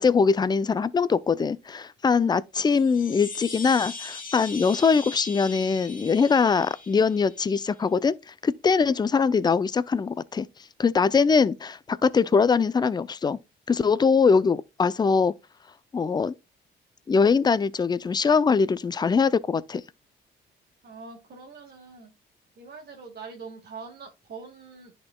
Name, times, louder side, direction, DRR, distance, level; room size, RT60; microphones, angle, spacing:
voice 1, 0.0-8.2 8.4-10.5 10.8-13.4 13.7-15.3 15.9-16.3 17.1-19.8, left 5 dB, 20° left, 0.4 m, -22 dB
sound 1, 2.7-7.7, left 3 dB, 45° left, 1.4 m, -40 dB
voice 2, 20.8-22.1 22.6-24.9, right 5 dB, 55° right, 1.7 m, -43 dB
10.5 x 4.3 x 2.2 m
cardioid pair, 90°, 20 cm